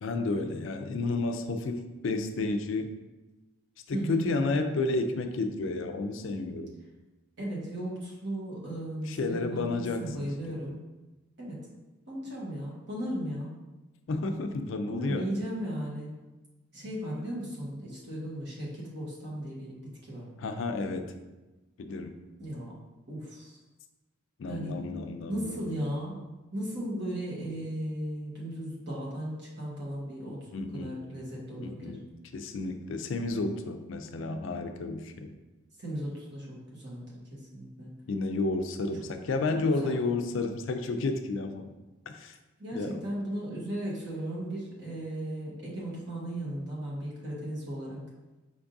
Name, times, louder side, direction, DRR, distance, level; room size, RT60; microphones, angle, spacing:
voice 1, 0.0-2.9 3.9-6.7 9.1-10.8 14.1-15.3 20.4-21.1 21.8-22.2 24.4-25.6 30.5-31.0 31.6-32.1 32.3-35.3 38.1-41.7 42.1-42.4 42.7-43.0, left 3 dB, 60° left, 7 dB, 0.4 m, -31 dB
voice 2, 3.9-4.5 7.4-10.8 11.4-11.7 12.1-13.6 14.9-16.1 16.7-19.7 20.0-20.3 22.4-22.8 23.1-23.6 24.5-24.8 25.3-26.2 26.5-30.4 30.7-32.0 35.8-37.9 39.5-40.1 42.6-48.0, right 1 dB, 55° right, -5 dB, 1.3 m, -36 dB
5.2 x 3.5 x 2.6 m, 1.1 s
head